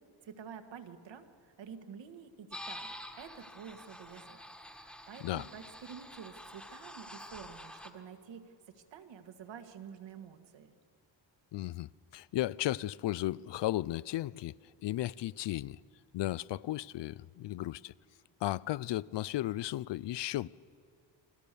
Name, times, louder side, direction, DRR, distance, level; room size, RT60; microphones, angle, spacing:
voice 1, 0.2-4.4 4.7-10.7, right 7 dB, 65° right, 1.9 m, -49 dB
sound 1, 2.5-7.9, left 1 dB, ahead, 1.5 m, -48 dB
voice 2, 11.5-14.6 14.8-15.8 16.1-17.9 18.4-20.5, left 15 dB, 65° left, 0.5 m, -35 dB
29.5 x 22.5 x 6.9 m
wide cardioid pair, 170°, 46 cm